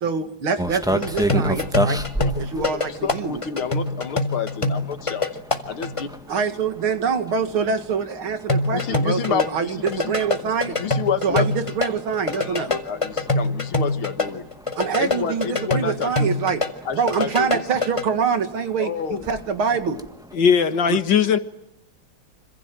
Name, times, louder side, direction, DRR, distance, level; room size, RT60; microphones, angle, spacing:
voice 1, 0.0-2.0 2.4-3.4 6.3-10.8 11.2-12.7 14.7-16.6 16.9-20.0, right 6 dB, 80° right, 8 dB, 2.9 m, -25 dB
sound 1, 0.6-20.3, right 1 dB, ahead, 1.4 m, -34 dB
sound 2, 1.0-6.0 8.5-11.9 12.1-16.7 16.9-18.1, left 2 dB, 15° left, 1.8 m, -24 dB
voice 2, 2.2-5.3 5.7-6.1 8.7-10.2 10.4-11.5 12.3-14.5 15.0-16.3 16.9-17.6 18.8-19.2 20.9-21.0, left 7 dB, 80° left, 10 dB, 2.5 m, -29 dB
voice 3, 20.3-21.4, left 7 dB, 60° left, 10 dB, 2.1 m, -18 dB
26.5 x 26.5 x 7.7 m, 0.81 s
omnidirectional pair, 2.3 m